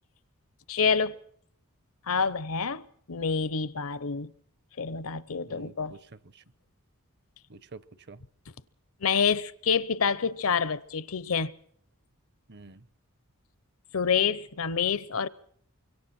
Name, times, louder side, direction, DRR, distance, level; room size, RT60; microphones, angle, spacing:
voice 1, 0.7-1.2 2.1-4.3 4.8-5.9 9.0-11.5 13.9-15.3, left 6 dB, 70° left, 0.8 m, -27 dB
voice 2, 5.4-6.4 7.5-8.2 12.5-12.9, right 3 dB, 50° right, 0.9 m, -49 dB
25.5 x 23.5 x 4.4 m
head